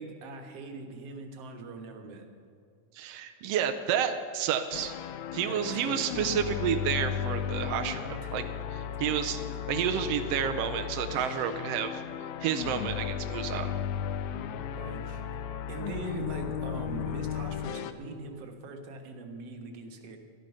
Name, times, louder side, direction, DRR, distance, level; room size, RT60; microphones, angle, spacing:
voice 1, 0.0-2.3 5.5-6.0 8.2-8.3 9.1-9.2 14.8-15.2 15.7-20.2, right 3 dB, 60° right, 3 dB, 2.1 m, -41 dB
voice 2, 2.9-4.9 5.3-8.4 8.7-9.4 9.7-12.0 12.4-13.7, right 8 dB, 85° right, 6 dB, 1.4 m, -30 dB
sound 1, 4.7-17.9, left 9 dB, 80° left, 1.9 m, -35 dB
13.0 x 12.5 x 5.6 m, 2.4 s
omnidirectional pair, 3.5 m